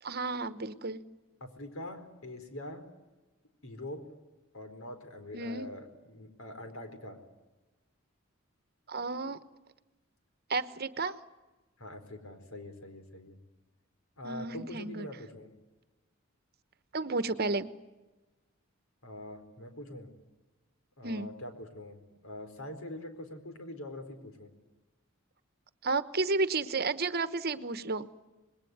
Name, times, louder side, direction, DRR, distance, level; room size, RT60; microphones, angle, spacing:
voice 1, 0.0-1.1 5.3-5.7 8.9-9.4 10.5-11.2 14.2-15.1 16.9-17.8 21.0-21.3 25.8-28.1, right 3 dB, 50° right, 13 dB, 1.1 m, -32 dB
voice 2, 1.4-2.8 3.6-4.0 4.5-7.2 11.8-13.3 14.2-15.5 19.0-20.1 21.0-22.0 22.2-24.5, left 1 dB, 80° left, 7 dB, 4.4 m, -44 dB
27.0 x 21.0 x 9.5 m, 1.2 s
head